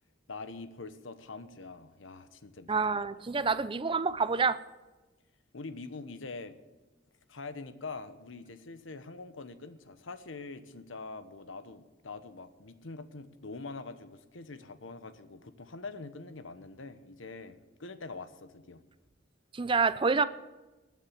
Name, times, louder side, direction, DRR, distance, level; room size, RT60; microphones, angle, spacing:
voice 1, 0.3-2.7 3.3-3.5 5.5-6.6 7.3-18.8, left 3 dB, 80° left, 11 dB, 1.1 m, -44 dB
voice 2, 2.7-4.6 19.5-20.2, right 4 dB, 25° right, 14 dB, 0.5 m, -27 dB
20.0 x 7.5 x 7.5 m, 1.1 s
head